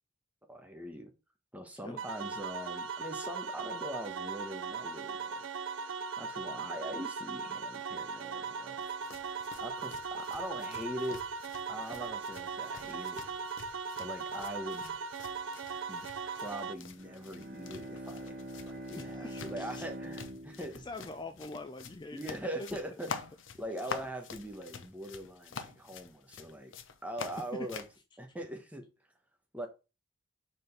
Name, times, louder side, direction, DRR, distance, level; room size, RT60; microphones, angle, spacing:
voice 1, 0.5-1.1 1.5-5.4 6.2-8.8 9.6-11.2 11.7-13.2 14.0-14.9 15.9-20.8 22.1-23.1 23.6-26.7 27.0-27.8 28.2-28.8 29.5-29.7, right 1 dB, 5° right, 1.1 m, -42 dB
sound 1, 2.0-16.7, right 5 dB, 75° right, 0.6 m, -39 dB
sound 2, 8.8-28.0, left 5 dB, 75° left, 0.8 m, -48 dB
Bowed string instrument, 16.9-21.7, equal, 55° right, 1.9 m, -44 dB
voice 2, 19.0-19.8 20.8-22.8 23.9-24.0 27.6-27.8, left 2 dB, 25° left, 0.4 m, -44 dB
5.0 x 4.4 x 5.4 m
head